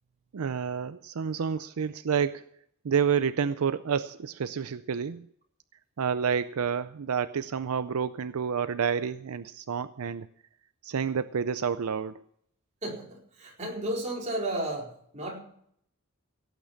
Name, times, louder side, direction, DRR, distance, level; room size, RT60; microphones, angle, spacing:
voice 1, 0.3-2.4 2.8-5.3 6.0-10.3 10.8-12.1, right 6 dB, 75° right, 13 dB, 0.5 m, -29 dB
voice 2, 12.8-15.4, right 1 dB, 30° right, -2 dB, 4.5 m, -33 dB
17.0 x 8.8 x 5.8 m, 0.67 s
head